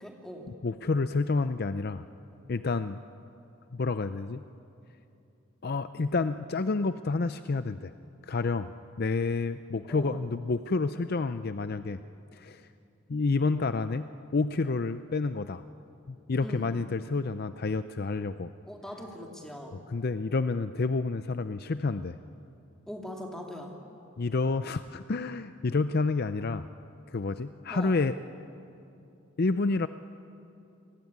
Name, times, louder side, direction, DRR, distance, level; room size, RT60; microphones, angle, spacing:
voice 1, 0.0-0.5 9.9-10.2 16.4-16.8 18.6-19.8 22.9-23.7 27.7-28.0, left 1 dB, ahead, 1 dB, 2.6 m, -41 dB
voice 2, 0.6-2.0 2.5-3.0 3.7-4.4 5.6-7.9 8.2-8.7 9.0-12.0 12.3-12.7 13.1-14.1 14.3-15.6 16.1-18.5 19.9-22.2 24.2-26.7 27.1-28.1 29.4-29.9, left 3 dB, 45° left, 11 dB, 0.5 m, -29 dB
28.5 x 19.5 x 9.5 m, 2.7 s
head